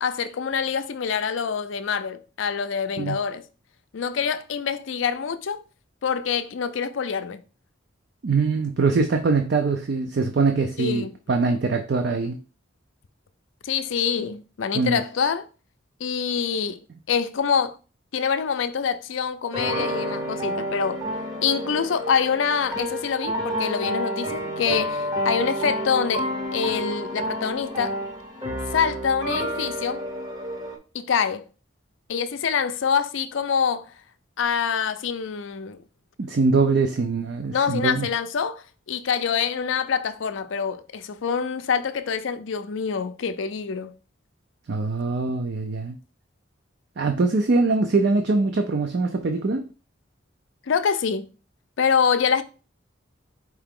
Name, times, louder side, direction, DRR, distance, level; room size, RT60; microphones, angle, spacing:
voice 1, 0.0-3.4 3.9-5.6 6.0-7.4 10.8-11.1 13.6-15.5 16.0-16.8 17.1-17.8 18.1-21.0 21.4-28.0 28.7-30.1 30.9-31.4 32.1-33.9 34.4-35.8 37.5-43.9 50.7-51.3 51.8-52.4, left 6 dB, 75° left, 0.4 m, -25 dB
voice 2, 8.2-12.4 14.7-15.0 36.2-38.1 44.7-46.0 47.0-49.6, right 3 dB, 55° right, 0.4 m, -23 dB
sound 1, 19.5-30.8, equal, 20° right, 0.7 m, -29 dB
4.6 x 2.9 x 3.6 m
head